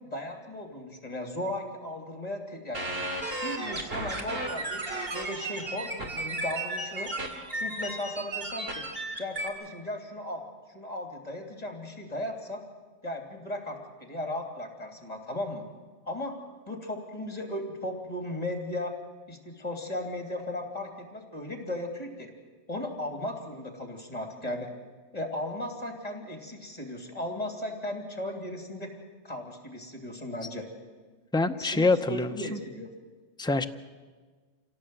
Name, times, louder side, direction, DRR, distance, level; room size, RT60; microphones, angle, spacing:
voice 1, 0.0-2.8 3.4-7.1 7.5-8.9 9.2-10.4 10.7-12.6 13.0-15.6 16.0-16.4 16.7-19.0 19.3-22.3 22.7-24.7 25.1-28.9 29.2-30.7 31.6-32.9, left 1 dB, 30° left, 4 dB, 3.2 m, -36 dB
sound 1, 2.7-9.5, right 2 dB, 45° right, 2.7 m, -34 dB
voice 2, 31.3-32.6 33.4-33.7, left 3 dB, 5° left, 8 dB, 0.5 m, -25 dB
26.5 x 17.0 x 8.0 m, 1.4 s
omnidirectional pair, 1.4 m